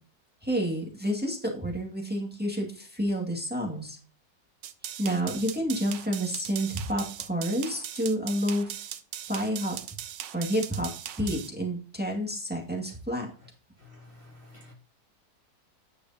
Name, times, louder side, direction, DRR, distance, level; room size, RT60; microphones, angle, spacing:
voice 1, 0.4-4.0 5.0-8.8 9.3-9.7 10.3-10.9 11.2-13.3, equal, 5° right, -1 dB, 1.8 m, -29 dB
sound 1, 4.6-11.5, right 11 dB, 80° right, 1.4 m, -39 dB
voice 2, 13.8-14.7, left 2 dB, 35° left, 0 dB, 1.5 m, -51 dB
9.9 x 6.6 x 2.8 m, 0.38 s
omnidirectional pair, 1.9 m